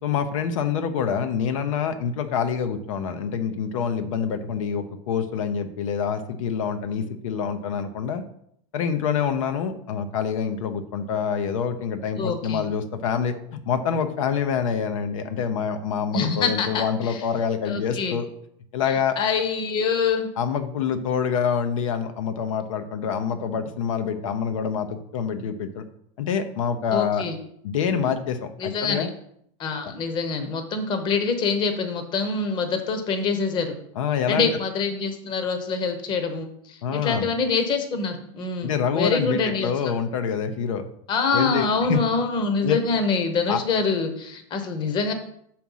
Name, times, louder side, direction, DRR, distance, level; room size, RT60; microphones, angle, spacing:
voice 1, 0.0-8.2 8.7-18.3 18.7-19.2 20.4-25.8 26.2-27.3 27.6-29.1 29.8-29.9 34.0-34.5 36.8-37.3 38.6-40.9 41.3-42.0 42.6-42.8 43.5-43.6, left 7 dB, 85° left, 9 dB, 0.8 m, -26 dB
voice 2, 12.2-12.7 16.1-17.2 17.7-18.2 18.8-20.3 26.9-27.4 28.6-29.1 29.6-33.7 34.3-39.9 41.1-45.1, left 4 dB, 30° left, 6 dB, 0.9 m, -25 dB
6.2 x 4.4 x 5.5 m, 0.69 s
supercardioid pair, 155°, 16 cm